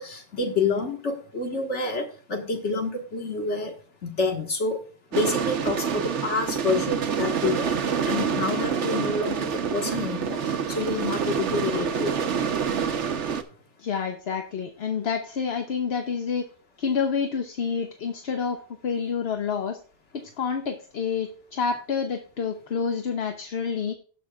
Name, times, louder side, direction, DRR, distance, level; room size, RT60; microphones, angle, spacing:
voice 1, 0.0-3.7 4.0-4.8 5.1-7.8 8.1-12.4, left 3 dB, 85° left, 3 dB, 1.8 m, -28 dB
sound 1, 5.1-13.4, right 7 dB, 80° right, 1.2 m, -27 dB
voice 2, 13.8-16.5 16.8-18.6 18.8-19.8 20.1-23.9, left 6 dB, 65° left, 6 dB, 1.1 m, -28 dB
18.0 x 6.3 x 2.3 m, 0.41 s
omnidirectional pair, 1.2 m